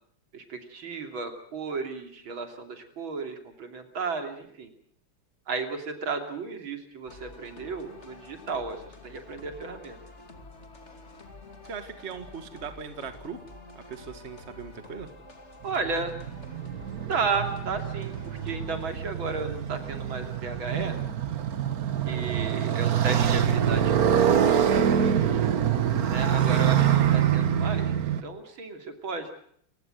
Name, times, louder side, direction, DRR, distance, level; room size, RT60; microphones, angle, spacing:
voice 1, 0.3-4.7 5.5-10.0 15.6-16.2 17.0-21.0 22.1-24.3 26.1-27.9 28.2-29.3, right 4 dB, 75° right, 6 dB, 3.6 m, -33 dB
sound 1, 7.1-18.9, left 2 dB, 35° left, 2.8 m, -48 dB
voice 2, 11.7-13.4 13.8-15.1 24.8-25.5, right 5 dB, 35° right, 9 dB, 1.9 m, -39 dB
Motorcycle, 15.7-28.2, right 9 dB, 50° right, 1.5 m, -25 dB
29.0 x 16.5 x 7.8 m, 0.63 s
omnidirectional pair, 2.2 m